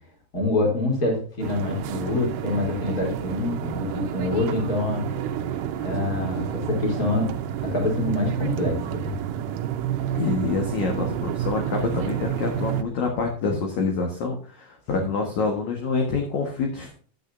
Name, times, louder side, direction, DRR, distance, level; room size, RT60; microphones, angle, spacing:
voice 1, 0.3-5.0 5.8-7.3 7.6-9.1 15.0-15.1, left 2 dB, 25° left, 1 dB, 3.0 m, -26 dB
sound 1, 1.4-12.8, right 10 dB, 80° right, 3.0 m, -29 dB
voice 2, 10.1-16.9, left 4 dB, 60° left, 2 dB, 2.3 m, -26 dB
12.0 x 8.6 x 2.6 m, 0.44 s
omnidirectional pair, 4.9 m